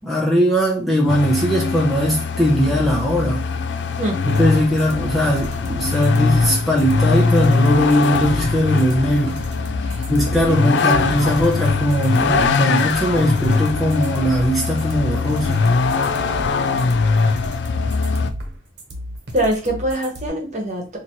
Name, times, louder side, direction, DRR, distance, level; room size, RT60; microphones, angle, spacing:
voice 1, 0.0-3.5 4.3-9.5 10.1-15.7, equal, ahead, 0.6 m, -19 dB
Vehicle, 1.1-18.3, left 4 dB, 70° left, 0.3 m, -21 dB
sound 1, 4.3-20.3, equal, 65° right, 1.0 m, -33 dB
voice 2, 19.3-21.0, right 1 dB, 40° right, 1.2 m, -23 dB
4.2 x 2.8 x 3.0 m
head